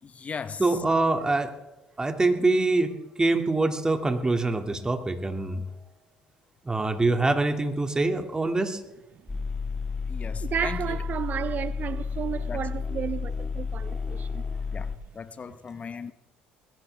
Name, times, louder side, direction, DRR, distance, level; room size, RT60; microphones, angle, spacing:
voice 1, 0.0-0.6 10.1-11.0 12.5-12.7 14.7-14.9 15.1-16.1, left 6 dB, 35° left, 1.0 m, -37 dB
voice 2, 0.6-1.5 2.0-5.6 6.6-8.8, right 2 dB, 20° right, 2.4 m, -24 dB
sound 1, 9.3-15.0, left 5 dB, 20° left, 1.9 m, -31 dB
voice 3, 10.4-14.4, right 8 dB, 45° right, 0.5 m, -32 dB
21.0 x 16.0 x 3.5 m
hypercardioid pair, 70°, 4 cm